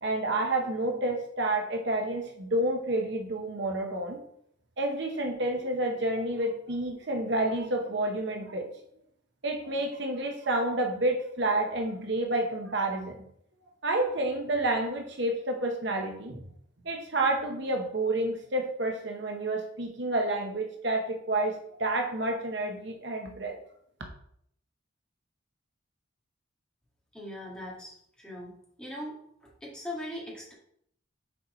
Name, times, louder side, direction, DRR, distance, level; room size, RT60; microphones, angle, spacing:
voice 1, 0.0-4.2 4.8-8.7 9.4-13.3 13.8-16.4 16.8-23.5, right 2 dB, 55° right, 2 dB, 0.9 m, -29 dB
voice 2, 27.1-28.5 28.8-29.2 29.6-30.5, left 1 dB, 5° left, -5 dB, 1.8 m, -40 dB
6.5 x 4.3 x 4.3 m, 0.69 s
head